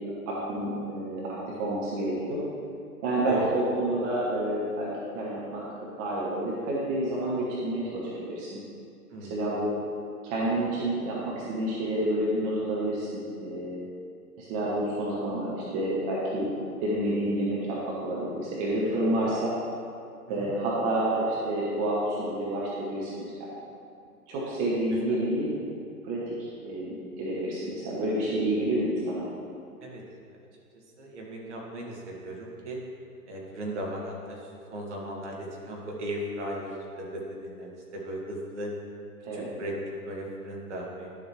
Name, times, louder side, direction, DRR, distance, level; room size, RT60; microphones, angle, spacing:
voice 1, 0.3-2.4 3.0-5.6 6.0-8.6 9.2-9.7 10.2-13.8 14.4-16.5 16.8-19.5 20.3-23.5 24.3-25.5 26.0-29.3 39.2-39.5, right 1 dB, 20° right, -6 dB, 1.1 m, -29 dB
voice 2, 9.1-9.4 20.3-20.5 24.9-25.2 29.8-30.4 31.0-32.8 33.3-34.4 34.7-35.4 35.7-38.7 39.3-39.8 40.0-41.1, right 1 dB, 50° right, -2 dB, 1.9 m, -37 dB
11.0 x 7.1 x 3.2 m, 2.4 s
figure-of-eight pair, 120°, 46 cm